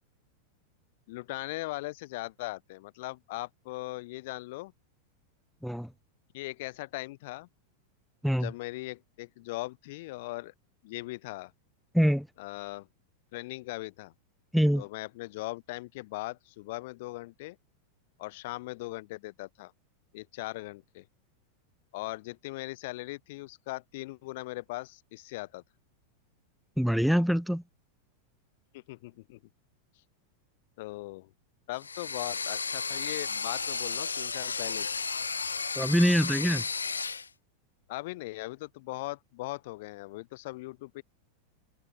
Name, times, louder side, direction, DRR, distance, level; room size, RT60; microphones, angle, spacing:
voice 1, 1.1-4.7 6.3-7.5 8.4-10.5 10.8-11.5 12.4-12.9 13.3-14.1 14.7-17.6 18.2-19.7 20.1-21.1 21.9-25.6 28.7-29.4 30.8-31.3 31.7-34.9 37.9-41.0, left 20 dB, 50° left, 5.0 m, -39 dB
voice 2, 11.9-12.3 14.5-14.8 26.8-27.6 35.8-36.7, equal, ahead, 2.8 m, -24 dB
sound 1, 31.8-37.3, left 5 dB, 75° left, 7.3 m, -33 dB
figure-of-eight pair, 90°, 0 cm